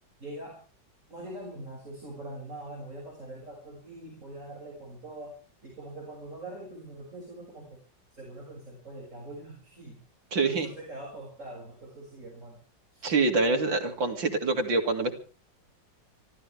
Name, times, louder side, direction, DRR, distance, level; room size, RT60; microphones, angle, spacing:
voice 1, 0.2-0.6 1.1-7.8 8.1-10.0 10.4-12.6 12.9-13.1, right 1 dB, 40° right, -2 dB, 7.1 m, -43 dB
voice 2, 10.3-10.7 13.0-15.1, right 3 dB, 85° right, 4 dB, 3.6 m, -25 dB
26.0 x 15.0 x 3.5 m, 0.38 s
omnidirectional pair, 2.0 m